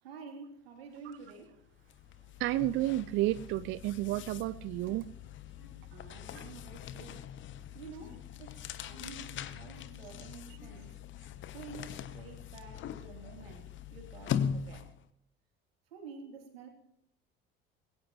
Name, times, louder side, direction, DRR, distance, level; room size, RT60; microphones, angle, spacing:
voice 1, 0.0-1.6 5.9-7.3 7.7-10.9 11.5-14.9 15.9-16.7, right 5 dB, 70° right, 2 dB, 3.3 m, -49 dB
sound 1, 1.1-1.3 1.6-15.1, left 8 dB, 40° left, 1.0 m, -41 dB
voice 2, 2.4-5.0 6.3-6.4, right 16 dB, 40° right, 16 dB, 0.5 m, -31 dB
sound 2, 4.1-4.4 4.8-5.1 5.6-5.8 6.3-6.6 8.0-8.4 8.9-9.3 9.7-10.1 10.6-10.9, left 4 dB, 65° left, 6.2 m, -56 dB
21.5 x 16.5 x 3.1 m, 0.74 s
figure-of-eight pair, 60°, 31 cm